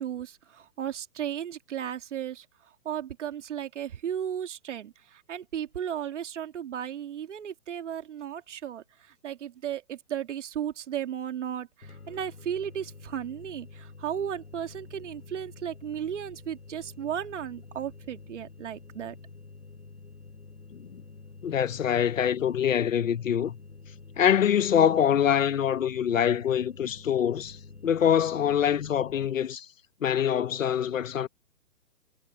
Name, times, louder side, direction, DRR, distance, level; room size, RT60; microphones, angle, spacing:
voice 1, 0.0-2.4 2.8-8.8 9.2-19.1, right 9 dB, 55° right, 2.5 m, -35 dB
sound 1, 11.8-29.3, left 4 dB, 90° left, 2.5 m, -48 dB
voice 2, 21.4-23.6 24.2-27.6 27.8-29.7 30.0-31.3, left 9 dB, 60° left, 1.2 m, -24 dB
hypercardioid pair, 135°, 43 cm